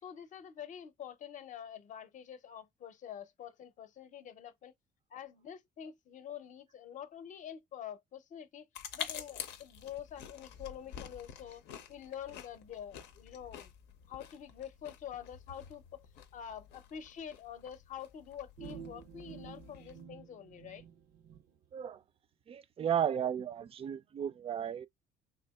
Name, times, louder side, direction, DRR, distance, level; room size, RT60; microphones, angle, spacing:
voice 1, 0.0-4.7 5.1-8.7 8.9-11.6 11.9-13.7 14.1-16.0 16.3-20.8, left 9 dB, 50° left, 0.6 m, -46 dB
sound 1, 8.7-20.0, left 8 dB, 85° left, 0.6 m, -48 dB
sound 2, 18.6-21.4, right 7 dB, 80° right, 0.6 m, -50 dB
voice 2, 22.5-24.9, right 9 dB, 35° right, 0.4 m, -34 dB
3.3 x 2.8 x 2.3 m
cardioid pair, 110°, 17 cm